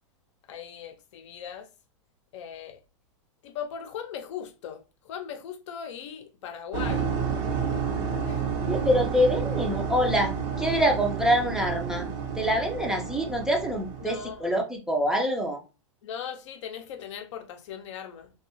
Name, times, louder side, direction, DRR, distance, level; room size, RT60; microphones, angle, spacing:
voice 1, 0.5-1.7 2.3-2.8 3.4-7.1 8.2-8.5 14.0-14.5 16.0-18.3, left 8 dB, 65° left, 0.5 m, -39 dB
sound 1, 6.7-14.3, right 6 dB, 65° right, 0.8 m, -30 dB
voice 2, 8.7-12.1 12.4-15.6, equal, 5° right, 0.4 m, -25 dB
2.6 x 2.2 x 2.8 m
hypercardioid pair, 120°, 16 cm